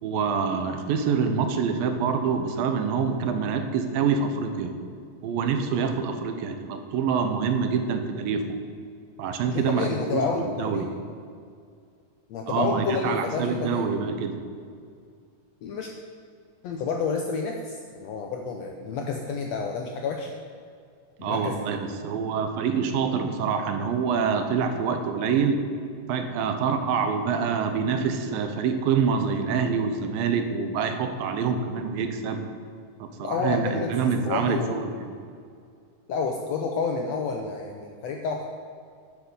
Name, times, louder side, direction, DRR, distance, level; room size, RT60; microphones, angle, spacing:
voice 1, 0.0-4.8 5.2-8.6 9.2-10.9 12.5-14.4 21.2-25.6 26.1-32.4 33.0-35.1, right 6 dB, 90° right, 7 dB, 2.7 m, -26 dB
voice 2, 9.5-10.9 12.3-13.8 15.6-15.9 16.6-20.3 21.2-21.6 33.2-33.9 34.2-34.8 36.1-38.5, left 5 dB, 75° left, 3 dB, 1.5 m, -29 dB
11.0 x 8.1 x 6.9 m, 2.3 s
omnidirectional pair, 4.0 m